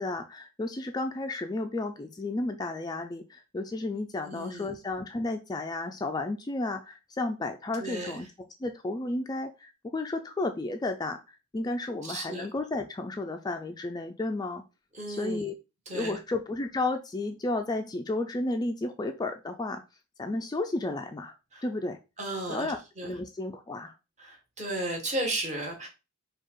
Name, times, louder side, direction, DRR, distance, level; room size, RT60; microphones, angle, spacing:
voice 1, 0.0-8.3 8.6-11.2 11.5-14.6 15.1-15.6 15.9-19.8 20.2-21.3 21.6-22.0 22.5-23.9, left 2 dB, 20° left, 5 dB, 0.3 m, -32 dB
voice 2, 4.2-4.7 7.8-8.1 12.0-12.5 14.9-15.5 15.9-16.2 21.5-21.6 22.2-23.1 24.2-25.9, right 1 dB, 35° right, 1 dB, 1.3 m, -34 dB
4.7 x 2.4 x 4.5 m, 0.28 s
head